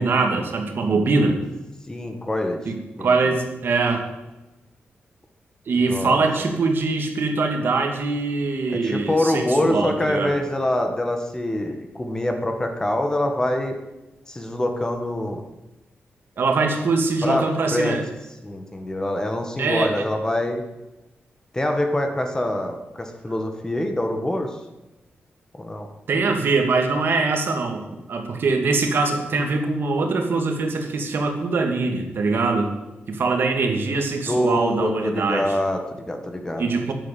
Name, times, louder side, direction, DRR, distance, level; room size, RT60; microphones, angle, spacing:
voice 1, 0.0-1.4 2.7-4.1 5.7-10.4 16.4-18.1 19.6-20.1 26.1-32.7 33.1-35.5 36.6-36.9, right 3 dB, 60° right, 4 dB, 2.3 m, -23 dB
voice 2, 1.9-2.6 3.0-3.3 5.9-6.5 8.8-13.8 14.3-15.4 17.2-18.0 18.4-20.6 21.5-24.6 25.6-25.9 34.3-36.7, left 1 dB, 15° left, 4 dB, 1.7 m, -25 dB
10.5 x 10.5 x 8.4 m, 1.0 s
wide cardioid pair, 140°, 4 cm